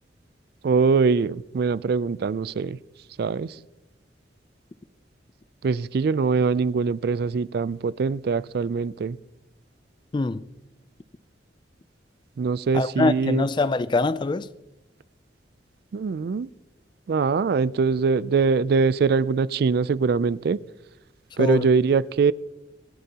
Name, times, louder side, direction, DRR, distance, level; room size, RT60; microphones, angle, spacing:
voice 1, 0.6-2.8 3.2-3.5 5.6-9.2 12.4-13.5 15.9-16.5 17.1-20.6 21.4-22.3, right 5 dB, 60° right, 0.3 m, -22 dB
voice 2, 10.1-10.5 12.7-14.5 21.4-21.7, left 3 dB, 25° left, 0.3 m, -24 dB
26.0 x 9.0 x 2.9 m
head